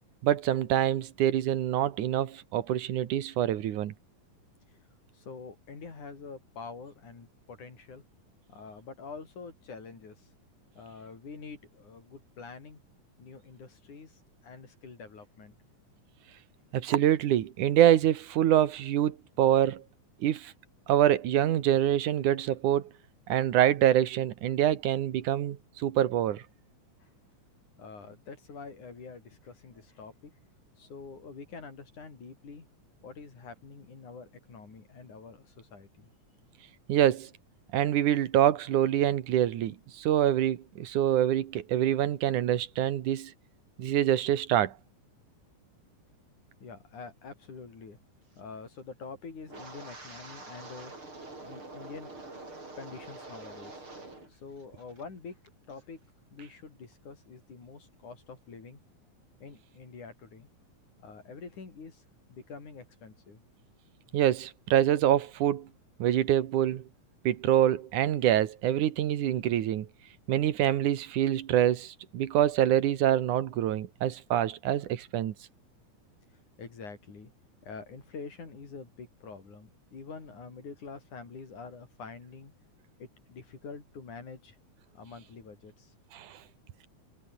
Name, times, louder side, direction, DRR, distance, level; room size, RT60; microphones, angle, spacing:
voice 1, 0.2-3.9 16.7-19.8 20.2-20.5 20.9-22.8 23.3-26.4 36.9-37.3 37.7-43.3 43.8-44.7 64.1-65.7 66.0-66.8 67.2-69.9 70.3-75.3 86.1-86.3, right 11 dB, 80° right, 2.9 m, -25 dB
voice 2, 5.1-8.0 8.5-10.3 10.8-12.8 13.2-15.5 27.8-30.3 30.8-32.7 33.0-36.1 46.6-48.0 48.4-50.9 51.4-52.1 52.8-53.8 54.3-55.4 55.7-56.0 56.3-58.8 59.4-60.5 61.0-62.0 62.3-63.4 76.6-77.3 77.6-82.5 83.0-84.6 84.9-85.9, left 4 dB, 75° left, 6.7 m, -46 dB
Wind, 49.5-54.3 54.6-55.0 55.5-55.7, right 2 dB, 40° right, 8.2 m, -45 dB
omnidirectional pair, 3.5 m